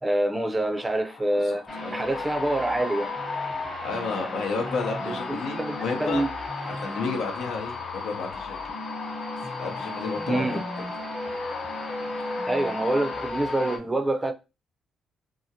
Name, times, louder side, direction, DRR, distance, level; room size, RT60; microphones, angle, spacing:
voice 1, 0.0-1.6 1.9-3.1 5.1-6.3 10.3-10.6 12.5-14.3, right 1 dB, 15° right, 0.5 m, -26 dB
sound 1, 0.6-13.3, left 6 dB, 60° left, 0.3 m, -38 dB
voice 2, 1.4-2.0 3.8-6.2 6.7-8.6 9.6-10.6, left 4 dB, 85° left, 0.7 m, -32 dB
sound 2, 1.7-13.8, left 2 dB, 30° left, 0.9 m, -35 dB
2.8 x 2.4 x 2.7 m
cardioid pair, 90°, 0 cm